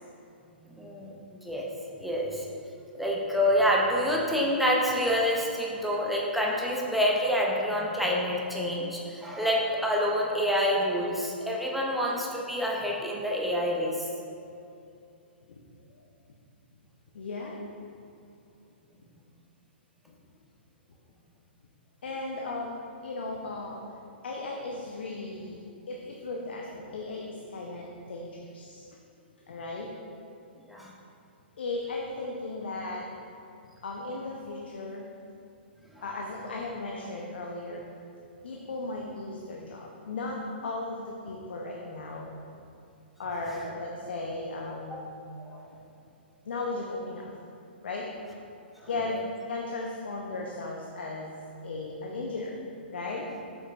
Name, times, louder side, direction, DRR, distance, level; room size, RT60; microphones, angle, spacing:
voice 1, 0.8-1.7 2.0-2.5 2.9-14.1 30.7-30.9 35.9-36.0 44.9-45.0 45.4-45.6 48.8-48.9, equal, ahead, -3 dB, 0.6 m, -27 dB
voice 2, 17.1-17.6 22.0-22.8 23.0-23.8 24.2-28.9 29.5-29.9 31.6-33.1 33.8-35.1 36.0-37.9 38.4-42.4 43.2-45.1 46.5-47.3 47.8-48.1 48.8-49.2 49.5-52.6 52.9-53.3, left 2 dB, 65° left, -1 dB, 0.7 m, -36 dB
7.2 x 6.5 x 2.5 m, 2.6 s
figure-of-eight pair, 120°, 6 cm